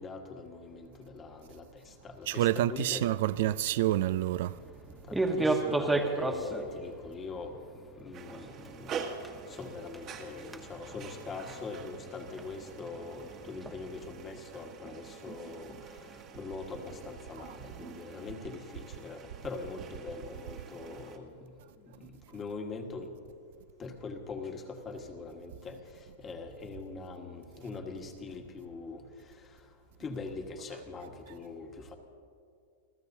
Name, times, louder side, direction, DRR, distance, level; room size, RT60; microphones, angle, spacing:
voice 1, 0.0-3.1 5.1-7.5 8.0-8.9 9.5-15.7 16.3-21.3 21.8-23.1 23.8-25.8 26.2-29.0 30.0-32.0, left 4 dB, 20° left, 1.4 m, -42 dB
voice 2, 2.3-4.5, right 14 dB, 60° right, 0.3 m, -28 dB
sound 1, 2.7-14.1, right 2 dB, 5° right, 1.0 m, -36 dB
sound 2, 8.1-21.2, right 6 dB, 30° right, 1.3 m, -46 dB
28.0 x 15.0 x 2.7 m
supercardioid pair, 155°, 0 cm